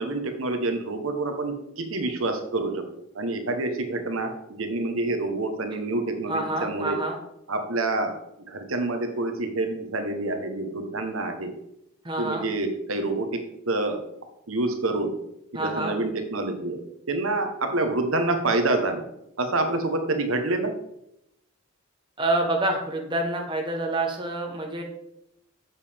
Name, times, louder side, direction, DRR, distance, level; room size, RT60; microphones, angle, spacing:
voice 1, 0.0-2.9 3.1-7.0 7.5-8.2 8.5-11.5 12.2-14.0 14.5-15.1 15.5-16.8 17.1-19.1 19.4-20.7, right 2 dB, 75° right, 6 dB, 1.2 m, -27 dB
voice 2, 6.3-7.2 12.0-12.4 15.5-16.0 22.2-24.8, right 2 dB, 20° right, 1 dB, 1.1 m, -27 dB
8.2 x 6.9 x 3.5 m, 0.80 s
head